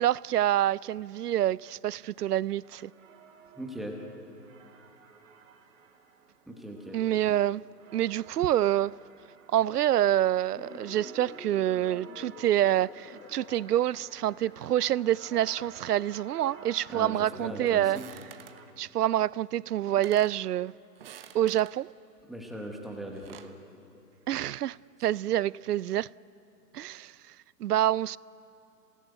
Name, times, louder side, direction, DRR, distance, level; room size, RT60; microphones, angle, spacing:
voice 1, 0.0-2.9 6.9-7.6 7.9-9.0 9.5-18.0 18.8-20.7 21.3-21.9 24.3-26.1 26.7-27.1 27.6-28.2, right 12 dB, 70° right, 0.5 m, -27 dB
sound 1, 2.6-18.7, right 6 dB, 55° right, 2.6 m, -53 dB
voice 2, 3.6-4.0 6.5-7.0 16.9-18.1 22.3-23.6, right 1 dB, ahead, 1.0 m, -39 dB
sound 2, 10.5-18.3, left 6 dB, 90° left, 1.5 m, -50 dB
sound 3, 17.9-18.6 19.5-19.6 19.9-20.4 21.0-21.8 22.9-23.6, right 9 dB, 35° right, 1.1 m, -49 dB
27.5 x 18.0 x 9.3 m
hypercardioid pair, 155°, 49 cm